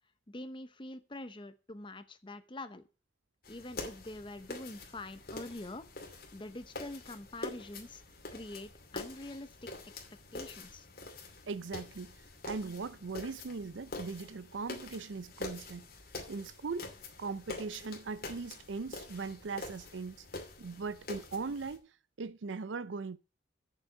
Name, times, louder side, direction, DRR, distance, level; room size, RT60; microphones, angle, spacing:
voice 1, 0.3-2.8 3.5-5.9 6.3-8.0 8.3-9.7 10.3-10.9, left 2 dB, 25° left, 0.9 m, -45 dB
sound 1, 3.4-21.8, left 2 dB, 50° left, 2.6 m, -46 dB
voice 2, 11.5-15.9 16.3-16.9 17.2-20.3 20.6-21.9 22.2-23.2, right 4 dB, 80° right, 0.6 m, -39 dB
7.4 x 6.9 x 7.5 m
head